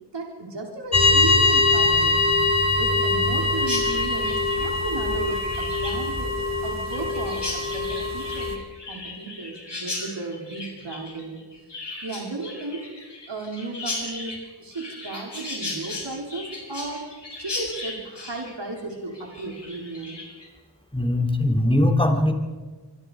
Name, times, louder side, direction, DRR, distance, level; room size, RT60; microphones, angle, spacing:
voice 1, 0.1-2.2 2.7-6.4 6.6-8.5 8.9-11.4 12.0-12.9 13.3-14.3 14.6-17.0 17.4-20.2, right 3 dB, 85° right, 0 dB, 4.4 m, -34 dB
sound 1, 0.9-8.6, left 3 dB, 40° left, 3.5 m, -22 dB
Chirp tweet, 3.6-20.5, left 2 dB, 75° left, 7.2 m, -36 dB
voice 2, 20.9-22.3, left 1 dB, 15° left, 3 dB, 3.4 m, -20 dB
26.5 x 24.5 x 5.0 m, 1.3 s
wide cardioid pair, 70°, 41 cm